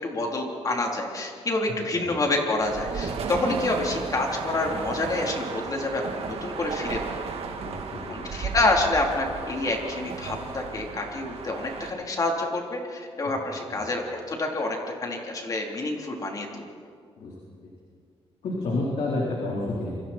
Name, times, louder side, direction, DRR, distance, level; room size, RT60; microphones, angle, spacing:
voice 1, 0.0-7.1 8.1-16.6, left 2 dB, 35° left, 0 dB, 3.8 m, -28 dB
sound 1, 2.6-11.9, right 5 dB, 70° right, 2.4 m, -34 dB
voice 2, 7.6-8.5 13.7-13.9 17.2-17.3 17.6-17.7 18.4-19.9, left 2 dB, 75° left, -4 dB, 4.4 m, -30 dB
28.0 x 25.5 x 4.6 m, 2.2 s
wide cardioid pair, 145°, 11 cm